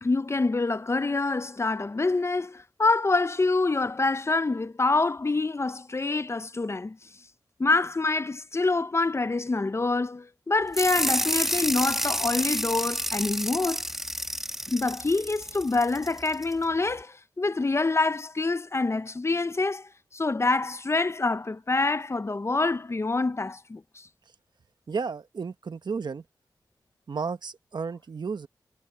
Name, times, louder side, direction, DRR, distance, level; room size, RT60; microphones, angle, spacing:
voice 1, 0.0-7.0 7.6-13.8 14.7-23.8, left 3 dB, 35° left, 0.6 m, -26 dB
sound 1, 10.7-16.5, equal, 5° right, 1.4 m, -30 dB
voice 2, 24.9-26.2 27.1-28.5, right 5 dB, 70° right, 1.2 m, -33 dB
cardioid pair, 50°, 8 cm